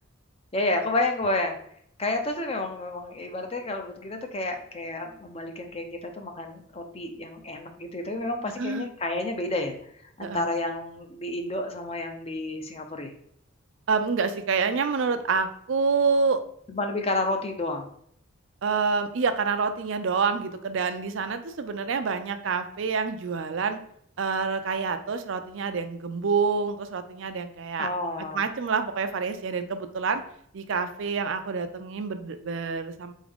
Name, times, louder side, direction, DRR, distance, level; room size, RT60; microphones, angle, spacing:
voice 1, 0.5-1.6 2.0-9.8 10.2-13.1 16.7-17.9 27.8-28.4, left 2 dB, 30° left, 5 dB, 0.5 m, -30 dB
voice 2, 8.6-8.9 10.2-10.4 13.9-16.4 18.6-23.8 24.2-27.9 28.3-30.2 30.5-33.1, right 5 dB, 65° right, 8 dB, 0.4 m, -27 dB
4.2 x 3.6 x 3.5 m, 0.67 s
head